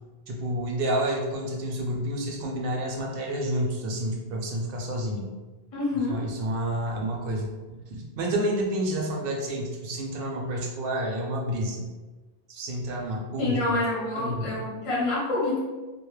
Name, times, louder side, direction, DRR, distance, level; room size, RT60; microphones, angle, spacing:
voice 1, 0.3-5.3 6.1-11.8 12.5-13.8 14.2-14.6, right 1 dB, 65° right, 0 dB, 0.7 m, -29 dB
voice 2, 5.7-6.2 13.4-15.6, left 2 dB, 35° left, -6 dB, 0.7 m, -27 dB
2.2 x 2.0 x 3.0 m, 1.2 s
omnidirectional pair, 1.1 m